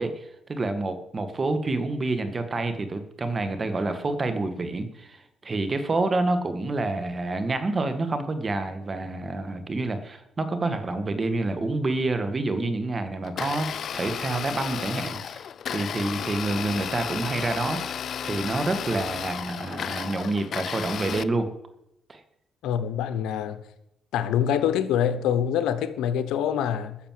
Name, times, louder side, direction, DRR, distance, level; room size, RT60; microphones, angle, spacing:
voice 1, 0.0-13.7 13.9-17.8 18.2-21.5 22.1-22.2, right 2 dB, 35° right, 1.8 m, -28 dB
Domestic sounds home sounds, 13.2-21.2, left 8 dB, 60° left, 0.4 m, -33 dB
voice 2, 22.6-23.6 24.1-27.0, left 9 dB, 90° left, 1.0 m, -25 dB
13.5 x 6.7 x 7.6 m
cardioid pair, 90°, 0 cm